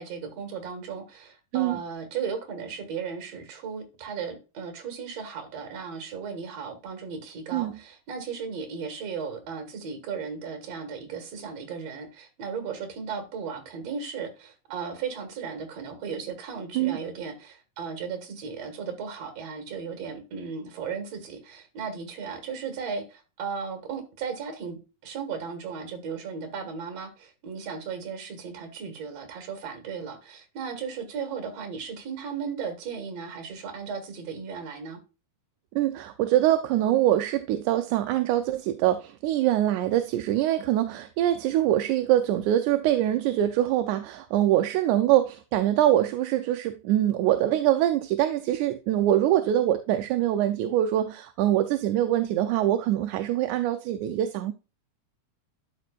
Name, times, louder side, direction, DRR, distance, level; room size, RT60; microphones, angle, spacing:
voice 1, 0.0-35.0, right 6 dB, 55° right, 2.6 m, -36 dB
voice 2, 35.8-54.5, right 12 dB, 80° right, 1.9 m, -24 dB
12.0 x 5.0 x 2.4 m
omnidirectional pair, 3.8 m